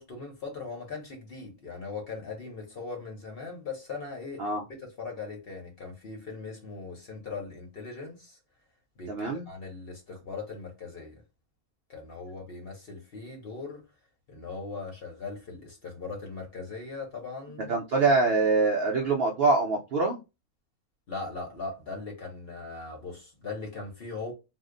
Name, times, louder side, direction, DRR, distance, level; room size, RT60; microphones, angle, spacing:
voice 1, 0.0-8.4 9.0-11.2 11.9-13.8 14.3-17.7 21.1-24.3, left 4 dB, 45° left, 0.9 m, -39 dB
voice 2, 9.1-9.5 17.7-20.2, right 3 dB, 65° right, 0.6 m, -24 dB
2.7 x 2.0 x 3.7 m
omnidirectional pair, 1.6 m